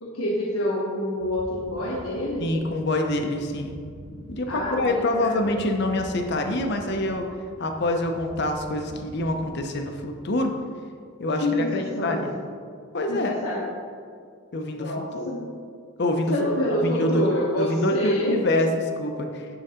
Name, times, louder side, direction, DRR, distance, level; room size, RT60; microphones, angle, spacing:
voice 1, 0.0-2.5 4.5-5.6 11.4-12.2 13.1-13.6 14.8-15.4 16.3-18.3, left 1 dB, 80° left, -5 dB, 1.2 m, -27 dB
sound 1, 1.2-10.4, right 1 dB, 90° right, 1.2 m, -44 dB
voice 2, 2.4-3.8 4.3-7.3 7.6-10.6 11.2-12.3 12.9-13.3 14.5-15.3 16.0-16.3 16.7-17.2 17.6-19.5, left 1 dB, 50° left, 4 dB, 0.7 m, -26 dB
10.0 x 3.9 x 5.7 m, 2.3 s
head